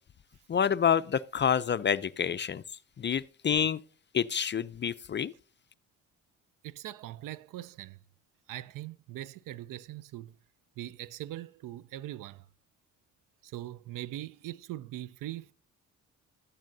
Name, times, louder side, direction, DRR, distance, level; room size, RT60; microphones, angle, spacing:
voice 1, 0.5-2.6 3.0-3.8 4.1-5.3, left 8 dB, 35° left, 0.4 m, -28 dB
voice 2, 6.6-8.0 8.5-10.3 10.8-12.5 13.4-15.5, right 14 dB, 70° right, 0.6 m, -41 dB
12.5 x 10.5 x 2.7 m
supercardioid pair, 65°, 34 cm